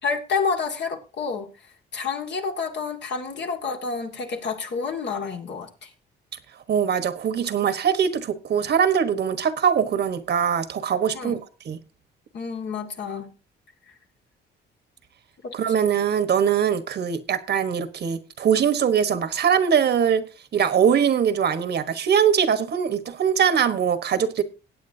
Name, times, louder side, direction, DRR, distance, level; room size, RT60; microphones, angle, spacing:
voice 1, 0.0-1.5 1.9-5.9 11.1-11.4 12.3-13.3 15.4-15.5, left 5 dB, 60° left, 2.1 m, -29 dB
voice 2, 6.7-11.4 11.6-11.8 15.5-20.2 20.5-24.4, right 8 dB, 55° right, 1.3 m, -22 dB
20.0 x 8.5 x 2.8 m
cardioid pair, 90°, 20 cm